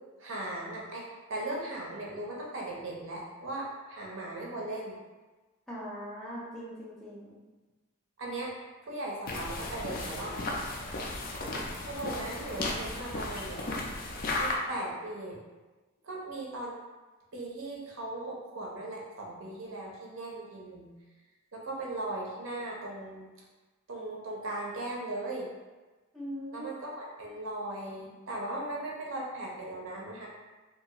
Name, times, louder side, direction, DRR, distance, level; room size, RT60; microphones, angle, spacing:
voice 1, 0.2-1.0 1.3-5.0 8.2-8.5 8.8-10.4 11.8-13.6 14.4-15.4 16.0-16.8 17.3-20.9 21.5-23.3 23.9-25.5 26.5-30.3, right 2 dB, 65° right, -3 dB, 0.6 m, -38 dB
voice 2, 5.7-7.4 26.1-26.7, equal, ahead, -8 dB, 0.6 m, -41 dB
sound 1, 9.3-14.5, left 2 dB, 45° left, 0.4 m, -35 dB
2.7 x 2.4 x 2.9 m, 1.2 s
head